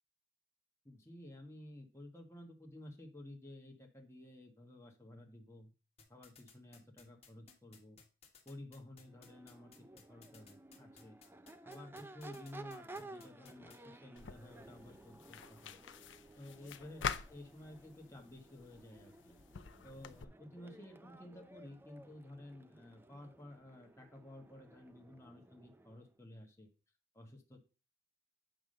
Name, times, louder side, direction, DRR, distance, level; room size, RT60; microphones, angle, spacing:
voice 1, 0.8-5.7 6.1-8.0 8.4-11.2 11.6-15.8 16.4-19.4 19.8-26.7 27.1-27.6, left 1 dB, 15° left, 1 dB, 1.5 m, -53 dB
sound 1, 6.0-13.8, left 5 dB, 35° left, 1.6 m, -60 dB
Crowd / Race car auto racing / Accelerating revving vroom, 9.0-26.1, right 2 dB, 10° right, 0.5 m, -56 dB
sound 2, 14.2-20.2, left 6 dB, 80° left, 0.6 m, -46 dB
9.1 x 3.6 x 6.5 m, 0.34 s
head